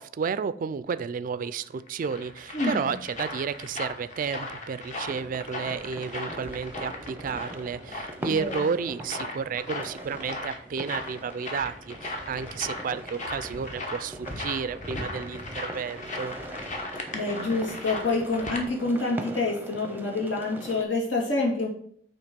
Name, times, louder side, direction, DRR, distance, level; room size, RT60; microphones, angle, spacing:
voice 1, 0.0-16.3, right 6 dB, 45° right, 15 dB, 0.3 m, -32 dB
sound 1, 1.6-18.7, left 2 dB, 40° left, 1.0 m, -38 dB
voice 2, 2.5-2.9 8.3-8.6 17.1-21.7, left 3 dB, 85° left, -2 dB, 1.9 m, -27 dB
sound 2, 5.1-20.8, right 1 dB, 10° right, 0.6 m, -42 dB
8.1 x 3.0 x 5.1 m, 0.64 s
head